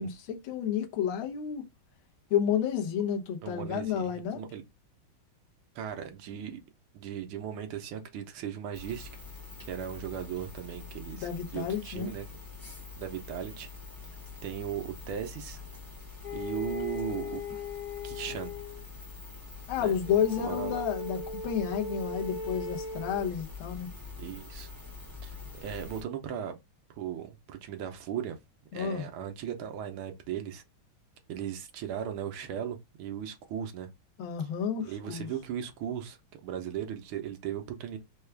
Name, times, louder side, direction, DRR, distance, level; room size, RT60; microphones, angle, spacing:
voice 1, 0.0-1.7 2.3-4.4 11.1-12.1 19.7-23.9 28.7-29.1 34.2-35.3, left 8 dB, 75° left, 1.6 m, -31 dB
voice 2, 3.4-4.6 5.7-6.6 6.9-9.1 9.7-12.2 13.0-13.7 14.4-15.6 16.3-17.4 18.0-18.5 19.8-19.9 20.4-20.8 24.2-24.7 25.2-26.6 27.0-28.4 28.7-30.6 31.3-33.9 34.8-38.0, right 9 dB, 75° right, 1.6 m, -37 dB
sound 1, 8.7-26.0, left 5 dB, 10° left, 1.1 m, -45 dB
sound 2, 16.2-18.8 20.0-23.3, left 3 dB, 45° left, 0.5 m, -38 dB
4.6 x 2.3 x 3.2 m
omnidirectional pair, 2.4 m